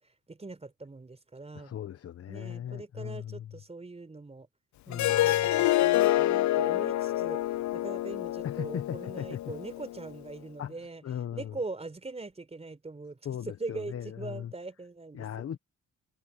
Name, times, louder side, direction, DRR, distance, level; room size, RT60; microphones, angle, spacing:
voice 1, 0.0-1.7 2.3-4.5 4.9-11.0 11.3-13.2 13.5-15.4, right 3 dB, 20° right, 4.3 m, -42 dB
voice 2, 1.5-3.5 4.9-5.7 8.4-9.5 10.6-10.8 11.0-11.6 13.2-14.5 15.1-15.6, left 9 dB, 50° left, 1.0 m, -38 dB
Harp, 4.9-10.1, left 15 dB, 70° left, 0.7 m, -27 dB
cardioid pair, 90°, 30 cm